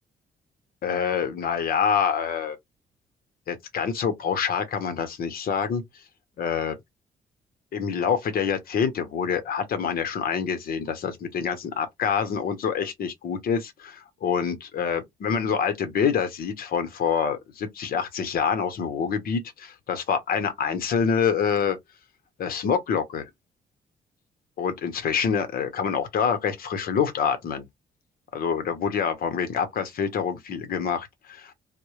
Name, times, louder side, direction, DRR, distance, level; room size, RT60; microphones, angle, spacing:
voice 1, 0.8-2.6 3.5-5.8 6.4-6.8 7.7-21.8 22.4-23.3 24.6-27.7 28.3-31.5, left 7 dB, 65° left, 0.8 m, -26 dB
2.1 x 2.0 x 3.0 m
cardioid pair, 85°, 16 cm